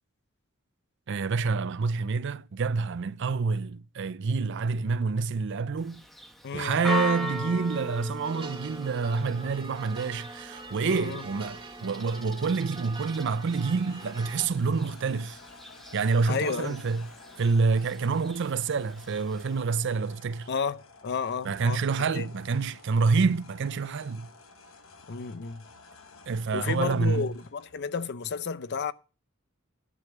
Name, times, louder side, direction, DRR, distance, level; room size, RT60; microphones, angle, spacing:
voice 1, 1.1-6.0 6.5-15.4 15.9-17.1 17.4-20.5 21.4-24.3 26.3-27.3, right 4 dB, 60° right, 0.5 m, -27 dB
Church bell, 5.8-19.6, left 1 dB, ahead, 0.9 m, -40 dB
voice 2, 6.4-6.9 10.8-11.2 16.3-16.8 20.5-21.8 22.1-22.3 25.1-25.6 26.5-28.9, left 5 dB, 55° left, 0.6 m, -32 dB
sound 1, 8.2-14.5, right 4 dB, 25° right, 1.5 m, -45 dB
sound 2, 13.1-27.9, left 4 dB, 80° left, 1.2 m, -53 dB
11.0 x 5.3 x 7.8 m
head